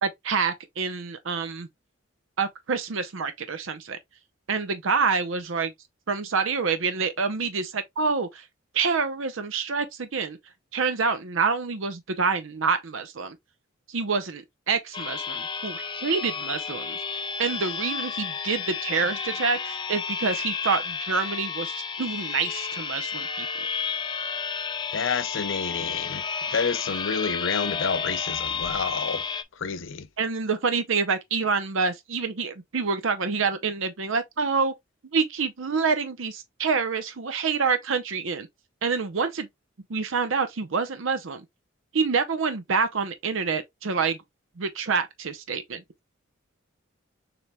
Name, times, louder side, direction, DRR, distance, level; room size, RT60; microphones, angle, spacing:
voice 1, 0.0-1.7 2.4-4.0 4.5-5.7 6.1-8.4 8.7-10.4 10.7-13.4 13.9-17.0 17.4-23.5 30.2-34.7 35.1-38.5 38.8-39.5 39.9-41.4 41.9-44.2 44.6-45.8, right 5 dB, 80° right, 0.7 m, -27 dB
sound 1, 14.9-29.4, left 6 dB, 25° left, 0.4 m, -31 dB
voice 2, 24.9-26.2 26.5-29.2 29.6-30.1, left 5 dB, 75° left, 0.6 m, -29 dB
6.8 x 3.4 x 2.2 m
head